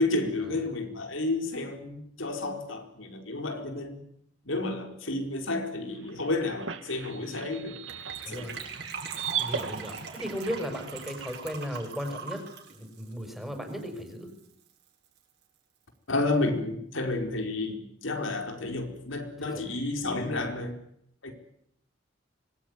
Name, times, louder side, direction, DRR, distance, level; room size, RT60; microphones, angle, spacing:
voice 1, 0.0-4.0 4.4-7.8 8.3-8.5 16.1-20.7 21.2-21.3, left 2 dB, 90° left, 4 dB, 4.5 m, -31 dB
sound 1, 5.9-11.4, right 8 dB, 80° right, 1.9 m, -38 dB
Gurgling / Trickle dribble / Fill (with liquid), 7.9-14.1 14.4-14.5 14.7-14.9 15.2-15.3, right 5 dB, 55° right, 6.9 m, -41 dB
voice 2, 9.4-12.4 12.7-14.3 19.5-19.6 20.1-20.5, equal, ahead, 5 dB, 5.4 m, -36 dB
25.0 x 20.5 x 9.7 m, 0.74 s
head